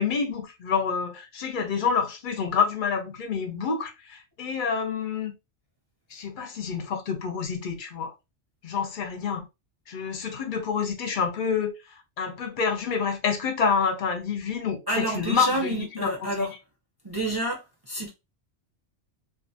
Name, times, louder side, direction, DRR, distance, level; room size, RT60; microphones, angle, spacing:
voice 1, 0.0-5.3 6.1-8.1 8.6-9.5 9.9-11.7 12.2-16.1, left 6 dB, 55° left, 0.6 m, -28 dB
voice 2, 14.9-16.5 17.0-18.1, right 1 dB, 25° right, 0.6 m, -29 dB
2.4 x 2.3 x 2.6 m
omnidirectional pair, 1.2 m